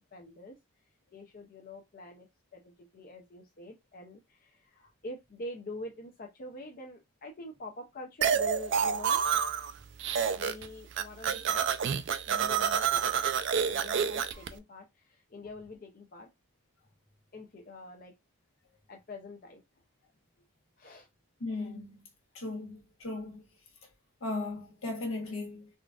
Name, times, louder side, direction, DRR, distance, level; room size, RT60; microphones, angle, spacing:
voice 1, 0.1-0.6 1.1-9.3 10.3-11.7 12.3-13.1 13.7-16.3 17.3-18.1 18.9-19.6 20.8-21.1, left 2 dB, 45° left, 0.5 m, -45 dB
sound 1, 8.2-9.7 10.0-10.7 10.9-14.5, right 7 dB, 55° right, 0.3 m, -28 dB
voice 2, 21.4-22.0 22.3-23.4 24.2-25.7, left 2 dB, 75° left, 1.1 m, -37 dB
3.7 x 2.4 x 2.3 m
head